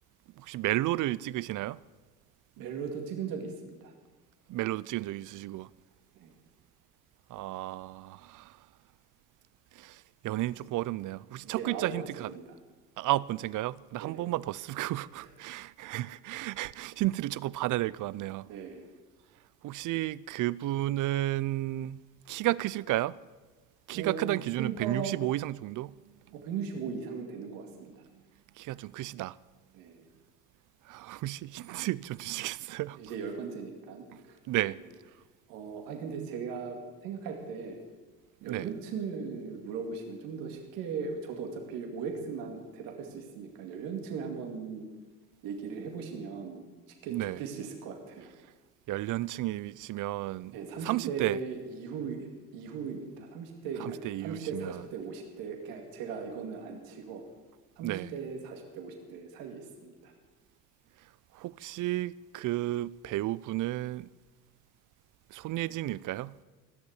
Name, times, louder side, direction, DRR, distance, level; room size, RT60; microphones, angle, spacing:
voice 1, 0.4-1.8 4.5-5.7 7.3-8.5 9.8-12.3 13.0-18.5 19.6-22.0 22.3-23.2 23.9-26.0 28.6-29.4 30.9-33.0 34.5-34.8 38.4-38.7 47.1-47.4 48.9-50.5 50.8-51.4 53.8-54.8 57.8-58.1 61.3-64.1 65.3-66.3, right 16 dB, 65° right, 0.5 m, -32 dB
voice 2, 2.6-3.9 6.2-6.3 11.4-12.6 14.0-14.2 15.1-15.3 15.8-16.0 18.5-18.8 23.9-25.2 26.3-28.0 29.7-30.1 33.0-34.8 35.5-37.8 38.4-44.9 45.4-48.3 50.5-57.2 57.8-60.1, right 5 dB, 85° right, 2.3 m, -38 dB
16.0 x 6.9 x 9.5 m
supercardioid pair, 85°, 34 cm